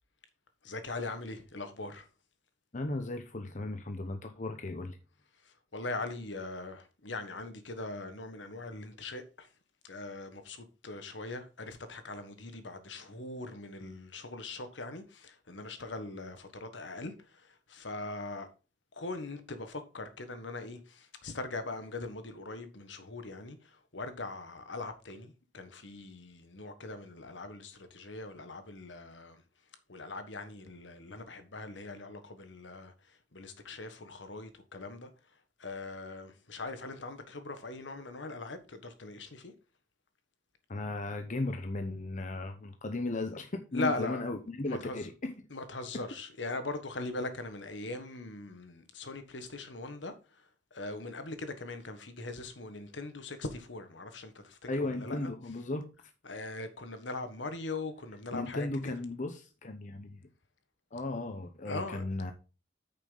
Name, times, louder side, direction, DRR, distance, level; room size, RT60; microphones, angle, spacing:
voice 1, 0.6-2.1 5.7-9.5 9.8-18.5 18.9-29.4 29.9-32.9 33.3-35.1 35.6-39.5 43.7-44.2 44.7-45.1 45.5-50.1 50.7-55.3 56.2-58.9 61.6-62.0, left 2 dB, 90° left, 1.5 m, -41 dB
voice 2, 2.7-5.0 40.7-45.3 54.7-55.9 58.3-60.2 60.9-62.3, left 2 dB, 45° left, 0.9 m, -36 dB
9.0 x 6.6 x 4.0 m
head